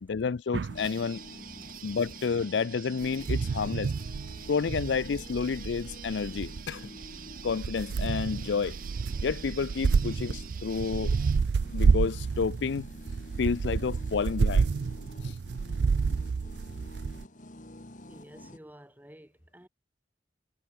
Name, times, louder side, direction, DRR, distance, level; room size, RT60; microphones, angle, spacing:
voice 1, 0.0-1.2 1.8-3.9 4.5-6.9 7.4-8.8 9.2-11.2 11.7-12.9 13.4-14.7 15.2-15.3, left 5 dB, 75° left, 0.5 m, -30 dB
sound 1, 0.5-0.9 2.1-2.2 3.0-17.2, right 5 dB, 70° right, 0.4 m, -29 dB
sound 2, 0.7-18.6, left 1 dB, 45° left, 2.1 m, -49 dB
sound 3, 0.8-11.4, right 9 dB, 50° right, 1.2 m, -47 dB
voice 2, 18.1-19.7, equal, 10° right, 2.2 m, -52 dB
head